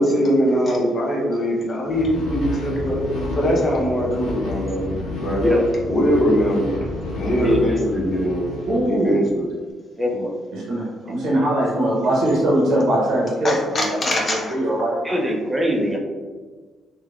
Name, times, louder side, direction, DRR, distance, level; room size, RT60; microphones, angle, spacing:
voice 1, 0.0-3.0 3.3-4.9 5.2-5.4 5.9-6.8 7.1-8.5 8.8-9.5 13.4-14.6, equal, 35° left, -2 dB, 0.7 m, -21 dB
sound 1, 1.9-9.3, left 1 dB, 85° left, 0.5 m, -30 dB
voice 2, 7.4-7.8 10.0-10.4 15.0-16.0, equal, 15° right, 0 dB, 0.5 m, -22 dB
voice 3, 8.7-9.3 10.5-13.9 14.5-15.2, right 1 dB, 80° right, -6 dB, 0.8 m, -21 dB
3.1 x 2.2 x 2.3 m, 1.4 s
cardioid pair, 90°, 0 cm